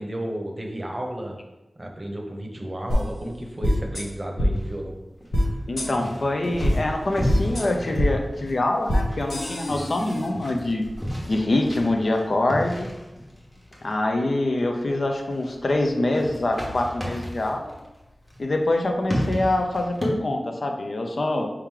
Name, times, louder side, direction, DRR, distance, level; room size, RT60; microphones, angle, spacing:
voice 1, 0.0-1.4 1.8-5.0, right 1 dB, 35° right, 2 dB, 0.8 m, -32 dB
sound 1, 2.9-3.0 3.6-4.0 4.4-4.5 5.3-5.4 5.8-5.9 6.6-6.7 7.3-7.6 8.0-8.1 8.9-9.0 9.3-10.3, equal, 90° left, 1.0 m, -23 dB
sound 2, 4.5-20.1, equal, 15° left, 1.2 m, -34 dB
voice 2, 5.7-10.9 11.3-12.9 13.8-17.7 18.4-21.5, left 2 dB, 65° left, 3 dB, 0.5 m, -25 dB
4.7 x 3.0 x 3.7 m, 1.0 s
wide cardioid pair, 70°, 0 cm